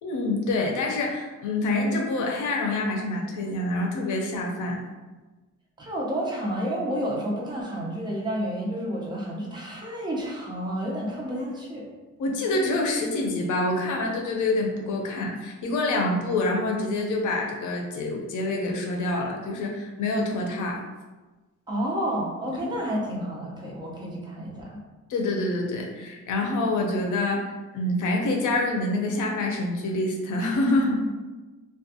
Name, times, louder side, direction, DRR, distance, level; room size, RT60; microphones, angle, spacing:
voice 1, 0.0-4.8 12.2-20.8 25.1-31.1, left 2 dB, 90° left, 1 dB, 0.6 m, -26 dB
voice 2, 5.8-11.8 21.7-24.8, equal, 15° right, -4 dB, 0.5 m, -30 dB
2.4 x 2.2 x 2.7 m, 1.2 s
wide cardioid pair, 175°, 29 cm